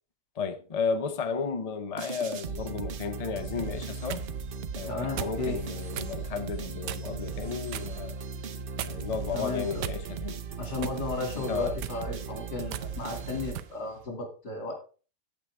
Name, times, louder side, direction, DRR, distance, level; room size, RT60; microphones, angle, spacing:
voice 1, 0.4-4.2 4.7-8.2 8.8-10.4 11.3-11.8, left 5 dB, 45° left, 0.5 m, -33 dB
sound 1, 2.0-14.1, right 5 dB, 60° right, 0.5 m, -37 dB
sound 2, 3.7-4.3 5.2-5.4 5.9-6.2 6.8-7.2 7.7-7.9 8.8-9.2 9.8-10.3 10.8-11.0 11.7-12.0 12.7-12.9 13.5-13.7, right 12 dB, 85° right, 1.2 m, -37 dB
voice 2, 4.9-5.6 9.3-9.9 10.6-14.7, left 3 dB, 75° left, 3.1 m, -34 dB
8.5 x 8.0 x 3.5 m
omnidirectional pair, 1.8 m